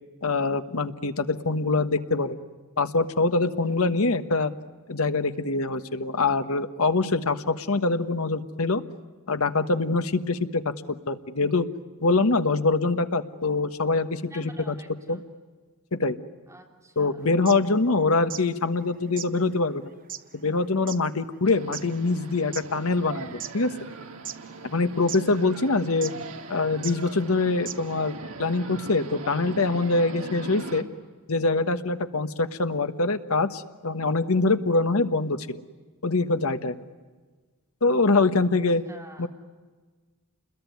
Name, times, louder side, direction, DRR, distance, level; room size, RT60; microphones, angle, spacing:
voice 1, 0.2-2.4 2.8-4.5 4.9-8.8 9.3-10.6 10.9-11.7 12.0-14.7 15.1-15.2 15.9-16.2 17.0-19.9 20.3-23.7 24.6-26.1 26.5-30.8 31.3-35.6 36.0-36.8 37.8-38.8 39.2-39.3, left 3 dB, 75° left, 10 dB, 1.3 m, -24 dB
voice 2, 3.6-4.0 14.3-15.3 16.5-17.4 30.0-30.3 38.4-38.5 38.9-39.3, right 2 dB, 15° right, 1 dB, 3.6 m, -49 dB
sound 1, 17.3-18.5 18.8-18.9 19.1-22.7 23.2-23.9 24.2-24.8 25.1-25.2 26.0-26.3 26.8-27.0 27.3-27.4 27.6-28.0, right 10 dB, 40° right, 1.0 m, -38 dB
sound 2, 21.4-30.8, right 3 dB, 70° right, 2.3 m, -41 dB
28.5 x 21.5 x 9.4 m, 1.4 s
head